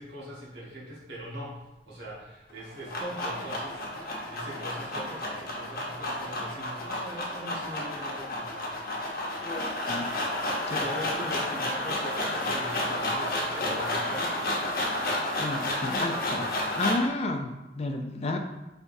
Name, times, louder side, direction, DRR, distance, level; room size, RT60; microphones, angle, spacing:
voice 1, 0.0-1.6 1.9-8.8 10.8-14.5, right 1 dB, 75° right, -5 dB, 1.3 m, -41 dB
sound 1, 2.5-17.1, left 1 dB, 55° left, 0.8 m, -31 dB
voice 2, 9.4-10.1 10.7-10.8 15.4-16.5 16.7-18.4, left 2 dB, 35° left, 4 dB, 0.4 m, -31 dB
4.6 x 3.4 x 2.6 m, 1.0 s
head